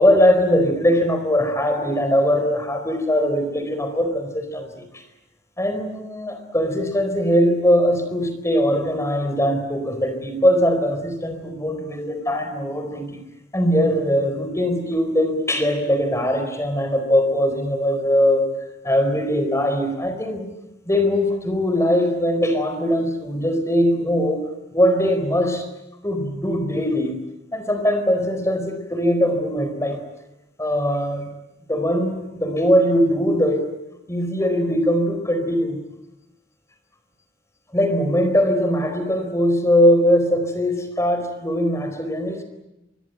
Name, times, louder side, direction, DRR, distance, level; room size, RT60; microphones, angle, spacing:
voice 1, 0.0-5.0 5.6-13.1 13.5-18.4 18.8-20.5 20.9-25.7 26.0-27.1 27.5-30.0 30.6-31.3 31.7-33.7 34.1-35.8 37.7-42.4, equal, 15° left, 8 dB, 4.4 m, -21 dB
26.0 x 23.5 x 9.2 m, 0.91 s
head